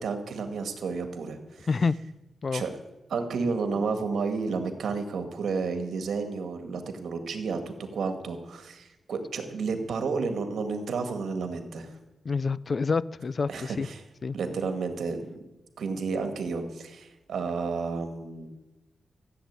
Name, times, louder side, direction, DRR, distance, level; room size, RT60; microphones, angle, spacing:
voice 1, 0.0-1.7 2.5-2.8 3.1-12.0 13.5-14.0 14.3-15.3 15.8-18.5, right 4 dB, 85° right, 7 dB, 2.0 m, -31 dB
voice 2, 12.3-13.9 14.2-14.4, left 4 dB, 40° left, 20 dB, 0.4 m, -27 dB
14.5 x 8.0 x 9.6 m, 1.0 s
wide cardioid pair, 120°, 0 cm